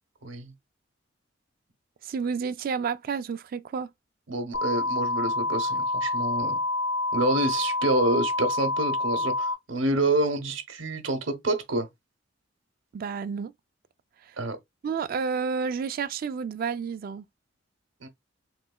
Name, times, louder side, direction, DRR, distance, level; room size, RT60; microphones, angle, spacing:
voice 1, 2.0-3.9 12.9-13.5 14.8-17.3, right 5 dB, 50° right, 0.3 m, -30 dB
voice 2, 4.3-6.6 7.1-11.9 14.4-14.6 18.0-18.1, right 2 dB, 80° right, 0.9 m, -27 dB
sound 1, 4.5-9.5, left 2 dB, 80° left, 1.8 m, -27 dB
3.9 x 3.1 x 2.2 m
head